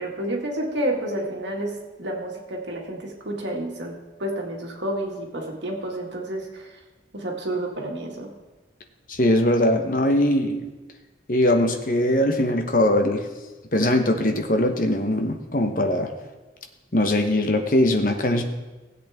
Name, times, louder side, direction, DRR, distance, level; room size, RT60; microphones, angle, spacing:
voice 1, 0.0-6.8 7.1-8.3, right 1 dB, 80° right, 0 dB, 2.1 m, -30 dB
voice 2, 9.1-10.6 11.3-13.3 13.7-16.1 16.9-18.4, left 1 dB, 45° left, 5 dB, 1.0 m, -21 dB
16.5 x 8.2 x 3.6 m, 1.2 s
head